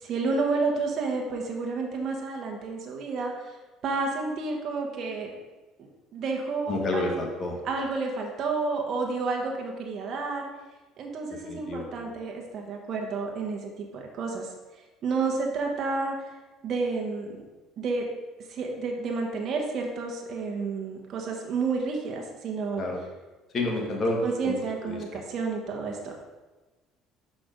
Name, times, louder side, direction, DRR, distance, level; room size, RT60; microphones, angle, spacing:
voice 1, 0.0-3.5 3.8-5.3 6.1-7.0 7.6-10.5 11.0-14.5 15.0-16.2 16.6-17.3 17.8-18.1 18.5-22.8 24.2-26.1, right 4 dB, 50° right, 1 dB, 1.2 m, -30 dB
voice 2, 6.7-7.6 11.3-11.9 22.8-23.0 23.5-24.6 24.8-25.2, left 2 dB, 40° left, 0 dB, 1.7 m, -29 dB
5.8 x 5.2 x 5.1 m, 1.2 s
cardioid pair, 110°, 0 cm